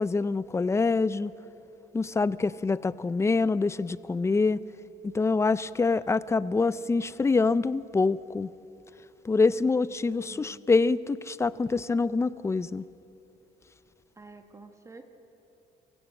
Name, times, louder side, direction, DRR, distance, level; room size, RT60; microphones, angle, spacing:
voice 1, 0.0-1.3 1.9-4.6 5.0-8.5 9.2-12.8, left 4 dB, 15° left, 17 dB, 0.5 m, -25 dB
voice 2, 10.1-10.7 14.2-15.1, right 3 dB, 20° right, 6 dB, 1.4 m, -50 dB
24.5 x 15.5 x 8.2 m, 2.9 s
cardioid pair, 110°, 17 cm